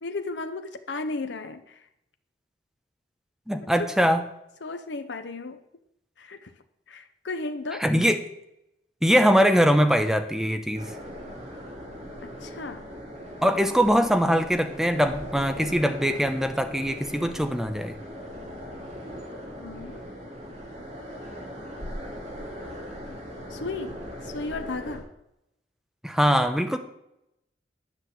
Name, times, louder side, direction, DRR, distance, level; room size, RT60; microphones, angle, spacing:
voice 1, 0.0-1.8 3.6-3.9 4.6-5.6 6.2-6.5 6.9-7.9 12.2-12.9 19.6-20.0 23.1-23.2 23.5-25.1, left 3 dB, 80° left, 8 dB, 0.7 m, -35 dB
voice 2, 3.5-4.2 7.8-8.2 9.0-10.9 13.4-17.9 26.0-26.8, equal, ahead, 7 dB, 0.9 m, -22 dB
sound 1, 10.7-25.0, equal, 40° right, 2.6 m, -39 dB
10.5 x 6.0 x 8.0 m, 0.82 s
head